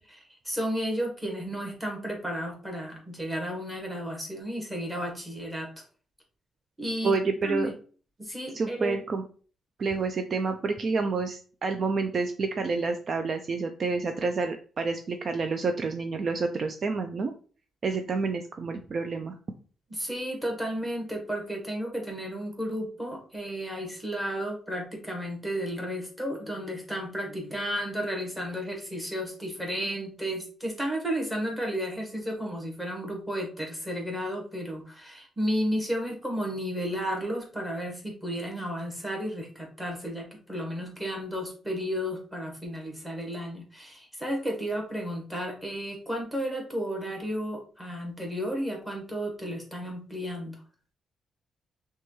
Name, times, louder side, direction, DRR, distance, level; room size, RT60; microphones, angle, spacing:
voice 1, 0.0-5.8 6.8-7.1 7.4-7.7 8.2-9.0 19.9-50.6, equal, 5° right, 0 dB, 1.2 m, -33 dB
voice 2, 7.0-7.7 8.5-9.2 9.8-17.3 17.8-19.4, right 4 dB, 40° right, 6 dB, 0.3 m, -29 dB
5.9 x 2.3 x 3.0 m, 0.41 s
wide cardioid pair, 160°, 0 cm